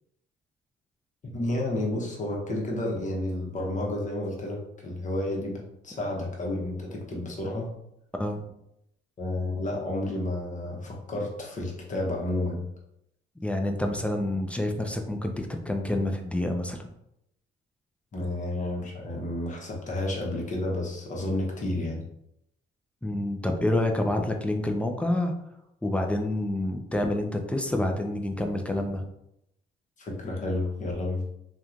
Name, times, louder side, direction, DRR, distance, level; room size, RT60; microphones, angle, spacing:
voice 1, 1.2-7.7 9.2-12.7 18.1-22.0 30.0-31.2, left 1 dB, 40° left, -1 dB, 0.9 m, -31 dB
voice 2, 13.4-16.9 23.0-25.3 25.8-29.1, left 1 dB, 5° left, 3 dB, 0.3 m, -28 dB
2.9 x 2.3 x 2.4 m, 0.79 s
cardioid pair, 90°, 20 cm